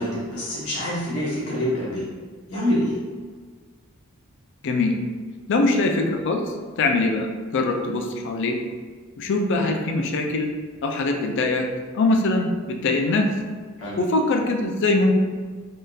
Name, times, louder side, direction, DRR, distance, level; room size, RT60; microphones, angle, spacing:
voice 1, 0.0-2.0 2.5-3.0 13.8-14.0, equal, 75° left, -9 dB, 1.1 m, -26 dB
voice 2, 4.6-4.9 5.5-6.4 6.8-8.6 9.2-10.5 10.8-11.7 11.9-13.3 14.0-15.1, left 2 dB, 55° left, 3 dB, 0.4 m, -22 dB
3.6 x 2.3 x 2.6 m, 1.5 s
head